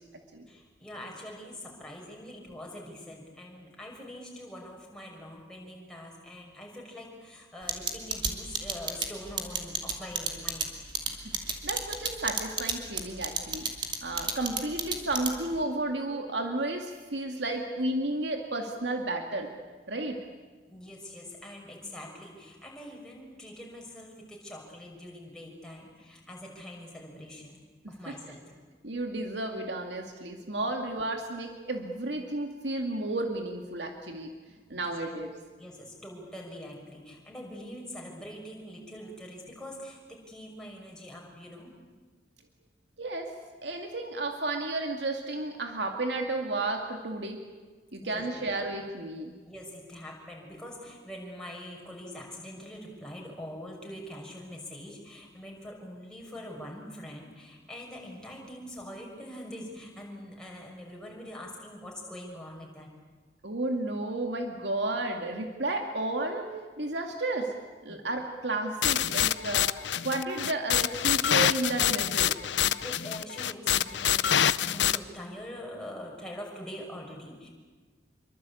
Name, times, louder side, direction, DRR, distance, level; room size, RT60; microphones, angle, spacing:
voice 1, 0.5-10.7 20.7-27.6 27.9-28.6 34.7-34.9 35.6-41.7 48.0-48.2 49.5-62.9 67.9-68.0 72.6-77.5, left 1 dB, 5° left, -2 dB, 6.1 m, -44 dB
sound 1, 7.7-15.6, right 5 dB, 25° right, 2.6 m, -30 dB
voice 2, 11.1-13.7 14.0-19.5 19.9-20.2 27.8-28.2 28.8-34.3 34.7-35.3 43.0-43.3 43.6-47.4 47.9-49.3 63.4-67.5 67.8-69.7 70.0-72.7, right 2 dB, 75° right, 3 dB, 2.3 m, -32 dB
sound 2, 68.8-75.0, left 10 dB, 90° left, 0.7 m, -26 dB
26.5 x 24.0 x 8.6 m, 1.4 s
head